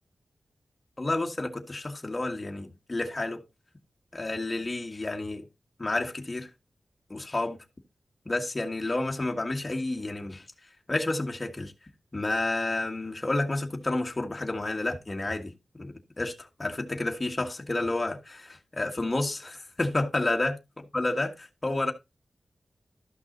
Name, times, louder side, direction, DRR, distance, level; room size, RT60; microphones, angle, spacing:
voice 1, 1.0-3.4 4.1-5.4 5.8-6.5 7.1-7.6 8.2-10.4 10.9-11.7 12.1-15.5 15.8-20.6 20.9-21.9, left 2 dB, 25° left, 1.7 m, -30 dB
13.0 x 6.0 x 3.9 m
wide cardioid pair, 105°, 0 cm